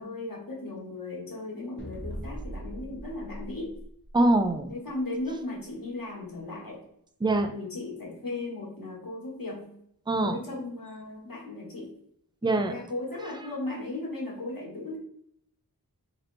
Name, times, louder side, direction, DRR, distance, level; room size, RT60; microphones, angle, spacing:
voice 1, 0.0-3.7 4.7-6.8 7.5-9.7 10.2-11.9 12.4-15.0, left 2 dB, 70° left, -3 dB, 1.5 m, -36 dB
sound 1, 1.8-4.5, right 1 dB, 30° left, 0.9 m, -40 dB
voice 2, 4.1-4.7 7.2-7.5 10.1-10.4 12.4-12.7, right 2 dB, 15° right, 6 dB, 0.5 m, -23 dB
3.5 x 2.9 x 3.8 m, 0.71 s
wide cardioid pair, 45°, 36 cm